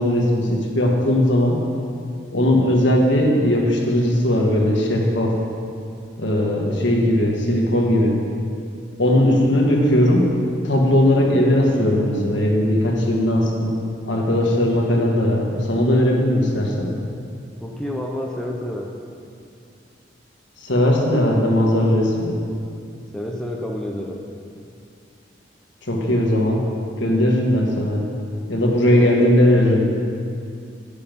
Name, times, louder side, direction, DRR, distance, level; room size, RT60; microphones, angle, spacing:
voice 1, 0.0-1.6 2.3-5.4 6.2-8.2 9.0-10.3 10.6-13.8 14.1-16.9 20.6-22.4 25.8-26.7 27.0-28.0 28.5-29.8, left 1 dB, 85° left, -1 dB, 1.6 m, -18 dB
voice 2, 17.6-18.9 23.1-24.2 28.8-29.8, left 1 dB, 5° left, -1 dB, 0.7 m, -30 dB
10.5 x 7.0 x 5.3 m, 2.4 s
head